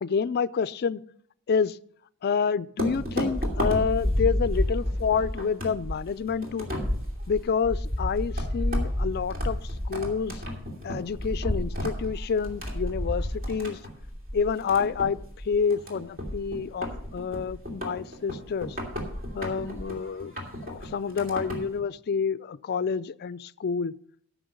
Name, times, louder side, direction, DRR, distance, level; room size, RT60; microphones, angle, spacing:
voice 1, 0.0-1.0 1.5-1.8 2.2-6.7 7.3-9.6 9.8-10.4 10.8-13.8 14.3-15.2 15.5-18.8 19.3-20.3 20.6-23.9, left 6 dB, 45° left, 17 dB, 0.4 m, -28 dB
sound 1, 2.8-21.8, left 1 dB, 40° right, 2.7 m, -31 dB
14.0 x 6.2 x 5.1 m, 0.66 s
head